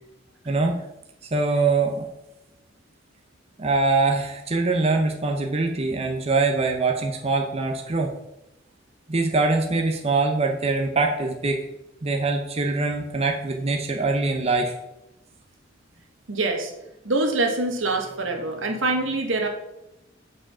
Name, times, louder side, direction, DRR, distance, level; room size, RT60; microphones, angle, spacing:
voice 1, 1.3-2.1 3.6-8.1 9.1-11.7 12.0-14.7, right 3 dB, 30° right, 2 dB, 0.8 m, -23 dB
voice 2, 16.3-16.7 17.0-19.5, right 2 dB, 80° right, 3 dB, 1.7 m, -24 dB
7.8 x 5.1 x 6.0 m, 0.91 s
head